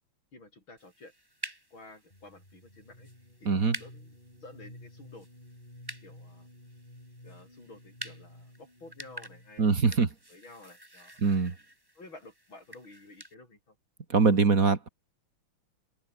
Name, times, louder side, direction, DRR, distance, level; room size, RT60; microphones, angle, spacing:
voice 1, 0.3-1.1 1.7-3.1 3.4-3.5 3.8-5.3 6.0-6.5 7.2-9.7 10.3-11.2 12.0-13.8, left 2 dB, 80° left, 8.6 m, -51 dB
sound 1, 0.8-13.3, right 1 dB, 10° right, 5.7 m, -48 dB
sound 2, 2.1-9.8, left 1 dB, 20° left, 7.7 m, -53 dB
voice 2, 3.5-3.8 9.6-10.1 11.2-11.5 14.1-14.9, right 4 dB, 45° right, 2.5 m, -23 dB
omnidirectional pair, 2.2 m